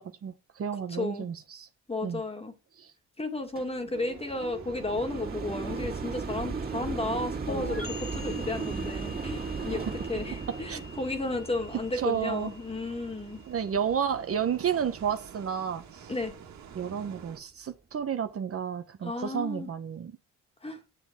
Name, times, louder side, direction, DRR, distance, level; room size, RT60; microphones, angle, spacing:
voice 1, 0.0-1.7 2.0-2.2 2.8-2.9 9.7-9.8 10.7-10.8 11.9-12.5 13.5-16.1 16.7-20.1, right 8 dB, 50° right, 1.2 m, -31 dB
voice 2, 0.9-1.3 1.9-2.5 3.2-13.4 16.1-16.3 19.0-19.7 20.6-20.8, left 2 dB, 20° left, 2.2 m, -33 dB
sound 1, 3.6-14.8 15.4-15.5, right 4 dB, 30° right, 2.7 m, -37 dB
sound 2, 3.9-17.4, right 7 dB, 65° right, 2.1 m, -50 dB
sound 3, 7.5-15.0, left 4 dB, 45° left, 2.4 m, -46 dB
9.8 x 7.2 x 5.2 m
cardioid pair, 90°, 30 cm